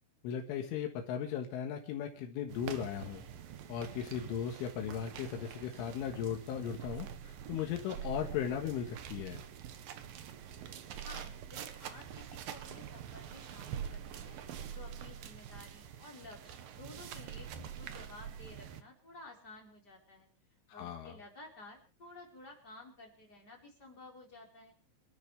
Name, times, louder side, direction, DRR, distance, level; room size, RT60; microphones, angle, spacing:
voice 1, 0.2-3.3 3.7-9.4 20.7-21.2, left 8 dB, 80° left, 3 dB, 4.0 m, -37 dB
sound 1, 2.5-18.8, right 9 dB, 70° right, 2.3 m, -45 dB
voice 2, 11.0-14.4 14.7-20.3 20.7-24.7, left 2 dB, 20° left, -1 dB, 4.8 m, -53 dB
28.0 x 12.5 x 3.4 m, 0.35 s
omnidirectional pair, 5.6 m